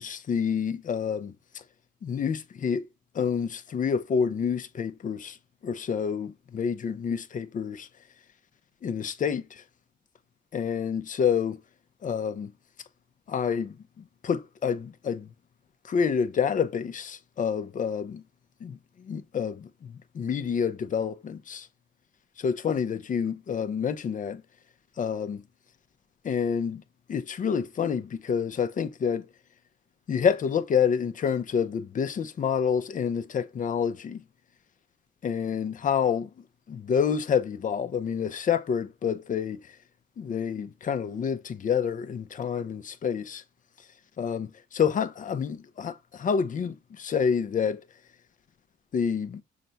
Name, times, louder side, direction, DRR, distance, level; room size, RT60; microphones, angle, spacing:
voice 1, 0.0-1.6 2.0-2.8 3.1-5.4 5.6-7.9 8.8-9.6 10.5-11.6 12.0-12.5 13.3-15.3 15.8-18.2 18.6-21.7 22.4-24.4 25.0-25.4 26.2-26.8 27.1-29.3 30.1-34.2 35.2-36.3 36.7-39.8 40.2-43.4 44.2-47.8 48.9-49.4, left 7 dB, 40° left, 0.6 m, -28 dB
5.8 x 2.2 x 3.9 m
cardioid pair, 90°, 20 cm